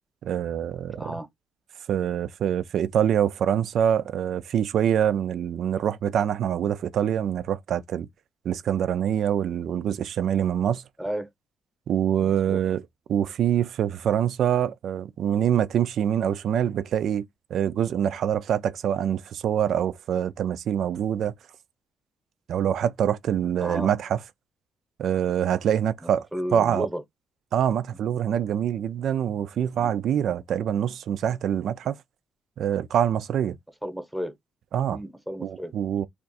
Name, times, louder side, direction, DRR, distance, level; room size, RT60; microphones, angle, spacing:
voice 1, 0.2-1.1 1.9-8.1 8.5-10.8 11.9-12.8 13.1-17.3 17.5-21.3 22.5-24.2 25.0-26.3 26.5-26.9 27.5-32.0 32.6-33.6 34.7-35.0 35.4-36.1, right 9 dB, 70° right, 0.3 m, -25 dB
voice 2, 0.9-1.3 11.0-11.3 12.2-12.6 23.6-23.9 26.0-27.0 29.8-29.9 33.8-34.3 34.9-35.7, equal, ahead, 0.8 m, -33 dB
2.5 x 2.3 x 3.9 m
cardioid pair, 90°, 0 cm